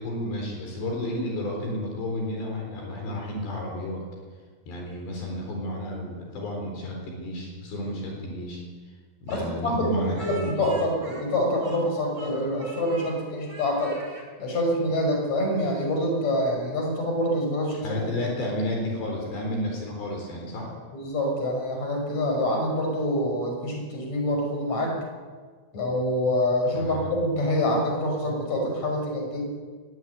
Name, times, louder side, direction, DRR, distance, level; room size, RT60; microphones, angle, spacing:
voice 1, 0.0-4.0 4.7-8.6 9.2-10.5 17.8-20.7 26.8-27.1, left 1 dB, 65° left, 1 dB, 6.1 m, -31 dB
voice 2, 9.3-10.9 11.2-14.0 14.4-18.0 20.9-25.0 25.7-29.4, left 1 dB, 35° left, 2 dB, 6.8 m, -26 dB
Speech, 9.3-11.9 12.1-13.2 13.5-14.3, right 2 dB, 25° right, 5.2 m, -44 dB
22.0 x 18.5 x 9.3 m, 1.5 s
omnidirectional pair, 5.3 m